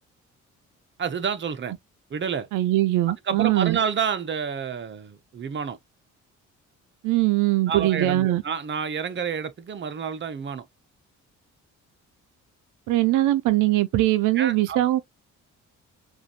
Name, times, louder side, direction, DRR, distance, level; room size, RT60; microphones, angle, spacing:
voice 1, 1.0-1.7 2.1-2.5 3.3-5.8 7.7-10.7 14.3-15.0, right 7 dB, 40° right, 0.9 m, -29 dB
voice 2, 2.5-3.8 7.0-8.4 12.9-15.0, right 16 dB, 90° right, 0.6 m, -21 dB
4.9 x 2.6 x 2.9 m
cardioid pair, 90°, 30 cm